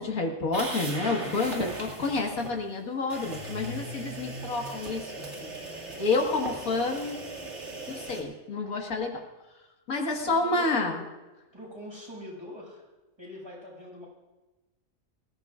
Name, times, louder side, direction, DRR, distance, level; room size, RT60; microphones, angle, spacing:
voice 1, 0.0-5.1 5.4-5.5 6.0-7.5 7.9-9.2 9.9-11.0, left 3 dB, 90° left, 1 dB, 2.2 m, -29 dB
sound 1, 0.5-2.5 3.1-8.2, right 2 dB, 55° right, 2.5 m, -38 dB
voice 2, 10.2-11.0 11.5-12.8 13.2-14.1, left 1 dB, 20° right, -5 dB, 6.2 m, -43 dB
24.5 x 15.0 x 2.5 m, 1.1 s
omnidirectional pair, 1.4 m